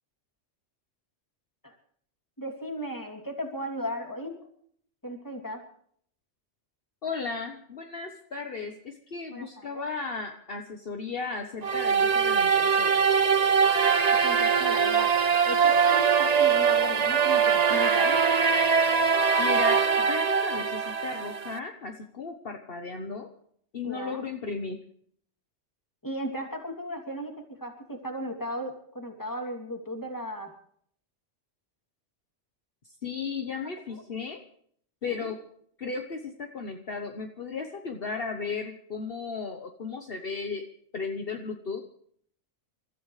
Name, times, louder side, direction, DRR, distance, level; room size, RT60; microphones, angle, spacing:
voice 1, 2.4-4.4 5.0-5.6 9.3-9.8 14.2-15.1 15.4-18.2 23.8-24.2 26.0-30.5 33.6-33.7 35.1-35.3, equal, 15° left, 2 dB, 3.0 m, -36 dB
voice 2, 7.0-13.0 19.4-23.3 23.7-24.8 33.0-34.4 35.0-35.3 35.8-40.6 40.9-41.8, left 4 dB, 55° left, 4 dB, 1.4 m, -35 dB
sound 1, 11.6-21.6, right 6 dB, 40° right, 0.8 m, -22 dB
29.0 x 14.0 x 3.3 m, 0.63 s
omnidirectional pair, 1.2 m